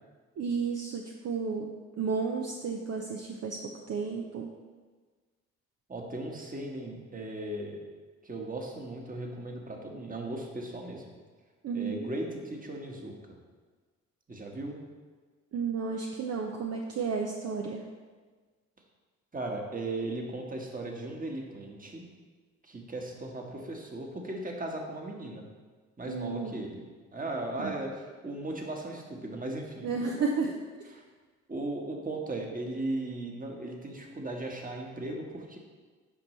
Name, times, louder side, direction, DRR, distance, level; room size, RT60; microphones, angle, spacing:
voice 1, 0.4-3.6 3.9-4.5 11.6-12.1 15.5-17.8 26.1-26.6 27.6-27.7 29.8-30.6, right 5 dB, 50° right, 1 dB, 0.7 m, -32 dB
voice 2, 5.9-7.8 8.2-11.0 11.7-13.1 14.3-14.8 19.3-22.0 22.6-25.4 26.0-26.8 27.1-29.9 30.9-31.0 31.5-35.6, right 2 dB, 25° right, 1 dB, 1.4 m, -37 dB
8.4 x 5.3 x 3.2 m, 1.4 s
supercardioid pair, 55°, 34 cm